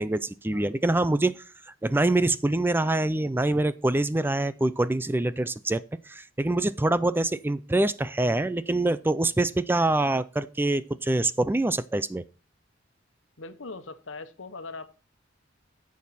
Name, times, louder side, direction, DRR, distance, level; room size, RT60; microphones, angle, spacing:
voice 1, 0.0-1.4 1.8-12.2, right 2 dB, 10° right, 0.4 m, -25 dB
voice 2, 13.4-14.9, left 3 dB, 80° left, 1.2 m, -41 dB
10.5 x 7.4 x 4.2 m
head